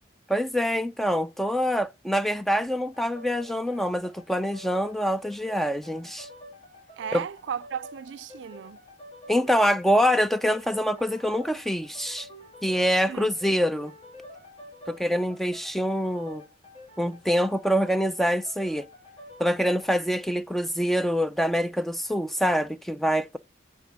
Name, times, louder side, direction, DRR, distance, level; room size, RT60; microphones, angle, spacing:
voice 1, 0.3-6.3 7.1-7.2 9.3-12.3 12.6-13.9 14.9-16.4 17.0-18.9 19.4-23.4, equal, ahead, 0.3 m, -25 dB
sound 1, 2.9-20.4, left 1 dB, 35° left, 1.8 m, -48 dB
voice 2, 7.0-8.8 13.1-13.3, right 8 dB, 90° right, 0.3 m, -35 dB
8.6 x 3.6 x 5.3 m
head